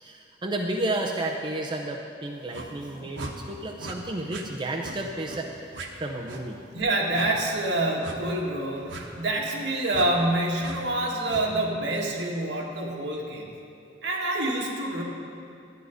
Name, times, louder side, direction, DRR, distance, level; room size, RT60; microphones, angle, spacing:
voice 1, 0.0-5.5 6.0-6.6, right 1 dB, 25° right, 0 dB, 0.6 m, -31 dB
sound 1, 2.5-2.7 3.1-3.3 3.8-4.0 4.3-4.5 4.8-5.0 5.3-5.4 5.7-5.9 6.3-6.4 7.1-7.3 8.0-8.2 8.9-9.0 9.9-10.1 10.6-10.8 11.3-11.5, right 2 dB, 90° right, 1.1 m, -38 dB
voice 2, 6.7-13.5 14.0-15.0, right 1 dB, 70° right, -2 dB, 1.8 m, -27 dB
12.0 x 9.5 x 5.0 m, 2.5 s
head